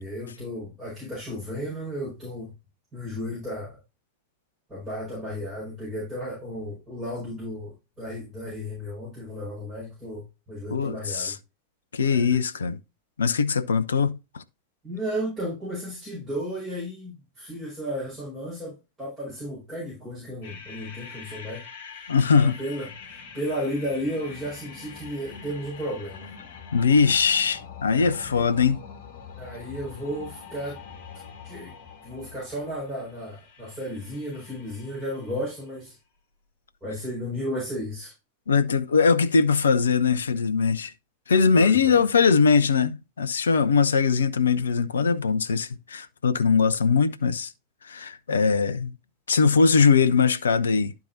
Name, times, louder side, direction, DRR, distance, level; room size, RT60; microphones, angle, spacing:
voice 1, 0.0-2.5 2.9-3.8 4.7-11.3 12.1-12.3 14.8-21.6 22.0-22.1 22.3-26.3 27.9-28.4 29.4-30.8 31.4-31.8 32.0-36.0 36.8-38.1 41.5-42.0, equal, 15° right, 5.2 m, -34 dB
voice 2, 10.7-11.4 11.9-12.8 13.2-14.4 22.1-22.6 26.7-28.8 38.5-40.9 41.3-47.5 47.8-49.0 49.3-50.9, left 5 dB, 70° left, 0.5 m, -21 dB
sound 1, 20.4-35.7, left 6 dB, 50° left, 1.4 m, -44 dB
11.5 x 4.7 x 2.7 m
figure-of-eight pair, 90°, 0 cm